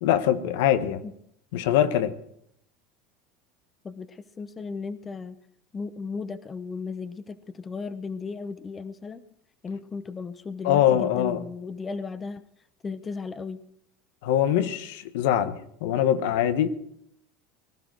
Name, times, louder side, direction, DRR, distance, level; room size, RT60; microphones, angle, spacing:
voice 1, 0.0-1.0 1.5-2.1 10.6-11.4 14.2-16.7, left 11 dB, 80° left, 10 dB, 1.2 m, -23 dB
voice 2, 3.8-5.4 5.7-9.2 9.6-12.4 12.8-13.6, left 4 dB, 25° left, 12 dB, 0.9 m, -35 dB
19.0 x 12.0 x 4.7 m, 0.72 s
supercardioid pair, 115°, 0 cm